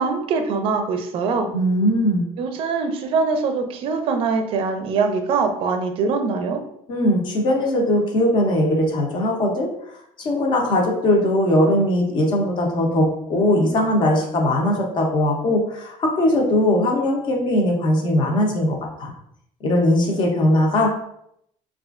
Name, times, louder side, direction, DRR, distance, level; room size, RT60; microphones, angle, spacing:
voice 1, 0.0-1.5 2.4-6.6, right 4 dB, 45° right, 6 dB, 0.4 m, -23 dB
voice 2, 1.5-2.2 6.9-9.7 10.2-19.1 19.6-20.9, left 1 dB, 40° left, 1 dB, 0.7 m, -20 dB
4.2 x 2.4 x 2.4 m, 0.74 s
cardioid pair, 175°, 12 cm